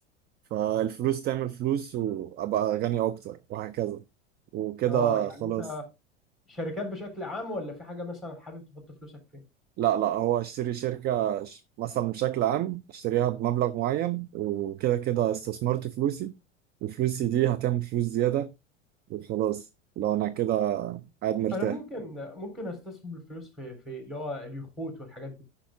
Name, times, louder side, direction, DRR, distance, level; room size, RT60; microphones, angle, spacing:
voice 1, 0.5-4.0 4.5-5.7 9.8-16.3 16.8-18.5 19.1-19.7 20.0-21.8, right 12 dB, 30° right, 0.5 m, -28 dB
voice 2, 4.9-5.8 6.5-8.6 9.0-9.1 21.5-25.4, left 1 dB, ahead, 3.7 m, -36 dB
10.0 x 5.8 x 3.6 m
figure-of-eight pair, 80°, 36 cm